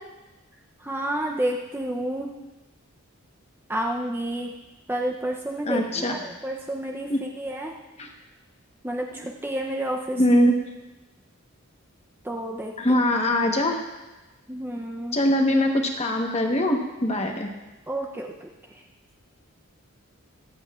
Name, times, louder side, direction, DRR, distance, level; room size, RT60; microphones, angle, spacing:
voice 1, 0.8-2.3 3.7-4.5 4.9-7.7 8.8-10.2 12.2-12.8 14.5-15.2 17.9-18.5, right 1 dB, 10° right, 0 dB, 0.6 m, -30 dB
voice 2, 5.6-6.1 7.1-7.2 8.0-8.1 9.1-9.2 10.2-10.5 12.8-13.8 15.1-17.5, left 1 dB, 30° left, 2 dB, 1.1 m, -22 dB
23.5 x 8.0 x 2.4 m, 1.1 s
head